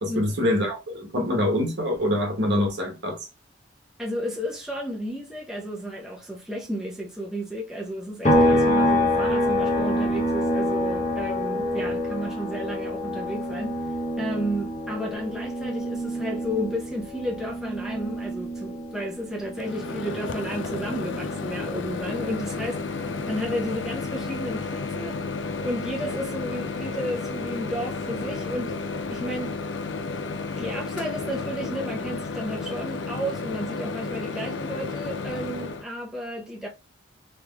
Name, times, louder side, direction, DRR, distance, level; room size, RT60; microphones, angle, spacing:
voice 1, 0.0-3.2, left 1 dB, 60° right, 1.0 m, -25 dB
voice 2, 4.0-13.8 14.2-25.2 25.6-28.8 29.1-29.6 30.6-36.7, equal, 5° right, 0.7 m, -32 dB
sound 1, 8.2-21.8 22.1-24.3, left 1 dB, 35° left, 0.8 m, -27 dB
Microwave oven, 19.6-35.8, left 4 dB, 65° left, 0.4 m, -32 dB
3.6 x 3.1 x 2.3 m
head